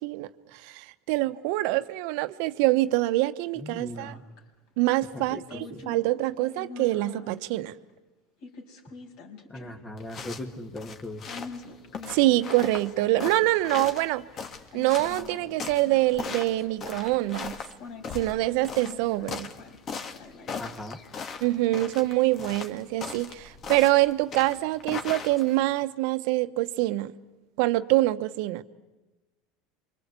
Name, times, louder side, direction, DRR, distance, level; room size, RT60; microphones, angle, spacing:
voice 1, 0.0-4.1 4.8-7.7 12.1-14.2 14.7-17.6 18.1-19.5 21.4-27.1 27.6-28.6, right 17 dB, 70° right, 1.1 m, -25 dB
voice 2, 3.6-4.2 5.1-5.9 9.5-11.2 20.6-21.0, left 1 dB, 25° left, 2.6 m, -39 dB
sound 1, 3.9-4.4 5.5-7.4 8.4-10.0 11.3-14.1 14.7-16.8 17.8-21.0, left 4 dB, 65° left, 5.0 m, -45 dB
sound 2, 10.0-25.7, left 5 dB, 40° left, 2.5 m, -39 dB
28.0 x 25.0 x 8.4 m
supercardioid pair, 95°, 0 cm